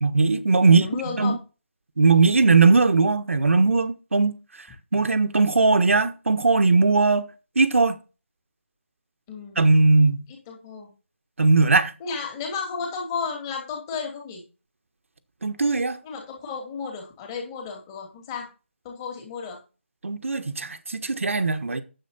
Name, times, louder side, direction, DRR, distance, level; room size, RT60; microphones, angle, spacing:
voice 1, 0.0-0.9 1.2-1.4 2.0-4.4 4.9-7.3 7.5-8.0 9.6-10.2 11.4-11.9 15.4-16.0 20.0-21.8, right 3 dB, 80° right, 1.5 m, -19 dB
voice 2, 0.6-1.4 9.3-9.6 10.5-10.9 12.0-14.4 16.0-18.5 18.8-19.6, left 5 dB, 15° left, 3.0 m, -33 dB
9.3 x 8.0 x 4.1 m
hypercardioid pair, 170°, 7 cm